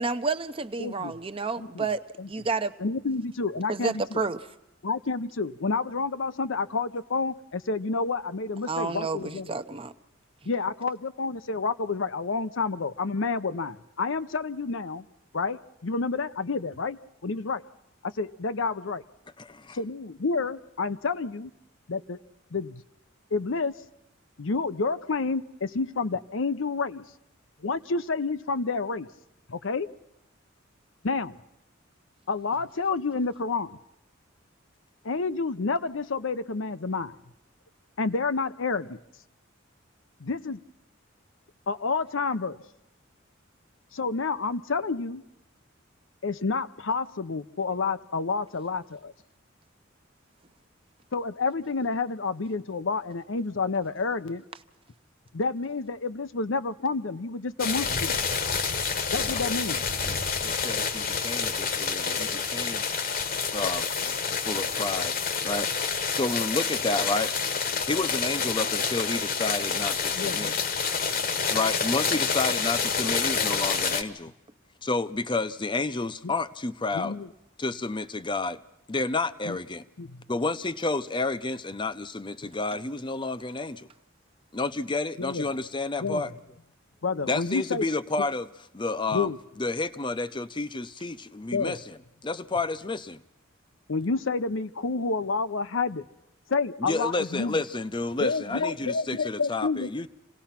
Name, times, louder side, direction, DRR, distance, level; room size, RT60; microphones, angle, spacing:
voice 1, 0.0-2.0 2.3-2.7 3.7-4.5 8.7-9.9 71.2-71.3, right 4 dB, 30° right, 11 dB, 0.7 m, -30 dB
voice 2, 0.8-1.1 1.6-1.9 2.2-2.3 2.8-4.2 4.8-9.5 10.5-15.1 15.3-17.6 18.0-19.0 19.7-21.5 21.9-22.2 22.5-22.8 23.3-23.7 24.4-27.1 27.6-29.1 29.5-29.9 31.0-31.3 32.3-33.8 35.0-37.1 38.0-39.0 40.2-40.7 41.7-42.6 43.9-45.2 46.2-49.1 51.1-54.4 55.3-58.2 59.1-59.8 70.2-70.6 71.1-71.2 76.2-76.3 76.9-77.3 79.5-79.6 80.0-80.2 85.2-85.4 86.0-86.2 87.0-87.9 89.1-89.4 91.5-91.8 93.9-96.0 96.5-97.6 98.2-99.9, left 4 dB, 70° left, 12 dB, 0.7 m, -29 dB
voice 3, 19.4-19.8 59.2-59.4 60.0-62.8 63.5-63.8 64.4-65.1 65.4-67.3 67.9-70.5 71.5-74.3 74.8-77.2 77.6-78.6 78.9-79.9 80.3-83.9 84.5-86.3 87.2-88.5 88.7-89.3 89.6-93.2 96.8-100.1, left 3 dB, 25° left, 14 dB, 0.7 m, -30 dB
sound 1, 57.6-74.0, left 5 dB, 45° left, 1.2 m, -28 dB
27.0 x 17.5 x 5.8 m, 0.88 s
head